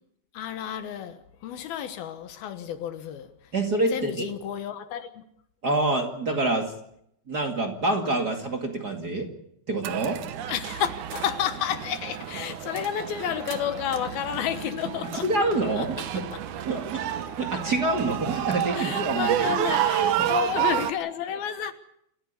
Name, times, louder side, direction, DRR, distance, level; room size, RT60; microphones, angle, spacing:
voice 1, 0.3-3.5 3.9-5.2 10.5-15.3 15.8-16.4 18.7-21.7, left 9 dB, 70° left, 3.0 m, -31 dB
voice 2, 3.5-4.3 5.6-6.7 7.3-9.3 9.7-10.2 15.2-16.3 16.7-16.8 17.4-19.3 20.2-20.3, right 2 dB, 35° right, 1.8 m, -26 dB
sound 1, 9.8-20.9, right 11 dB, 70° right, 2.0 m, -30 dB
28.0 x 14.5 x 8.2 m
omnidirectional pair, 4.9 m